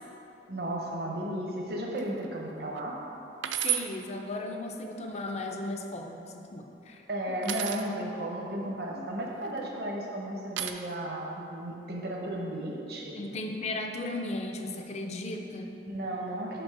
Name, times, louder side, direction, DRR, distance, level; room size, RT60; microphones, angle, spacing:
voice 1, 0.5-3.0 7.1-13.2 15.9-16.6, right 1 dB, 60° right, -1 dB, 0.9 m, -34 dB
sound 1, 2.0-2.3 2.8-2.9 3.4-3.9 5.1-5.7 7.4-7.9 9.3-9.8 10.6-10.7, right 11 dB, 85° right, 0.4 m, -32 dB
voice 2, 3.6-7.0 8.9-9.1 13.1-15.8, left 2 dB, 40° left, 3 dB, 0.5 m, -36 dB
5.2 x 4.0 x 5.9 m, 2.9 s
head